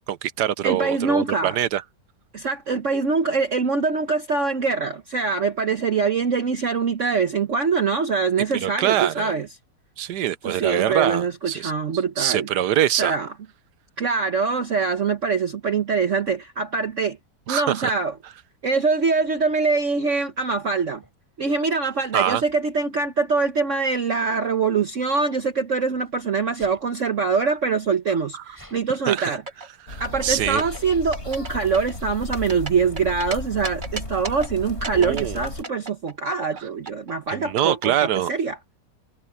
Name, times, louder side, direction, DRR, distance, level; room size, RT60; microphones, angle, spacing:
voice 1, 0.1-1.8 8.6-9.3 10.0-11.7 12.2-13.1 17.5-17.9 22.1-22.4 29.1-29.3 29.9-30.6 34.9-35.4 37.3-38.3, right 11 dB, 70° right, 1.4 m, -24 dB
voice 2, 0.6-1.6 2.3-9.5 10.4-12.5 13.0-13.3 14.0-17.2 17.5-18.1 18.6-21.0 21.4-29.4 30.0-38.6, right 4 dB, 50° right, 1.3 m, -24 dB
Sneeze, 21.0-21.1 22.3-22.6 24.7-26.1 26.5-26.9 27.6-27.7 27.9-28.9, equal, 10° left, 8.0 m, -51 dB
sound 1, 28.9-29.7 30.0-30.8 31.1-31.5 31.7-33.3 33.6-34.5 34.8-36.6 36.9-37.9, right 3 dB, 30° right, 1.6 m, -34 dB
sound 2, 29.9-35.6, left 2 dB, 35° left, 3.8 m, -35 dB
omnidirectional pair, 1.9 m